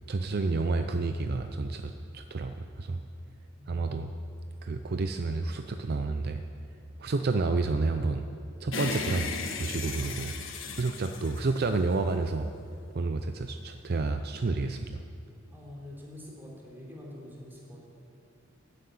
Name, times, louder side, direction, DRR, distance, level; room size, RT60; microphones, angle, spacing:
voice 1, 0.1-3.0 3.7-4.1 4.6-6.4 7.0-8.2 8.6-9.3 9.6-10.3 10.7-12.5 12.9-15.0, right 3 dB, 50° right, 7 dB, 0.5 m, -30 dB
voice 2, 3.6-4.1 15.5-17.8, left 1 dB, 10° right, -4 dB, 3.4 m, -46 dB
sound 1, 8.7-12.2, left 4 dB, 70° left, 1.3 m, -36 dB
14.0 x 7.9 x 9.3 m, 2.5 s
head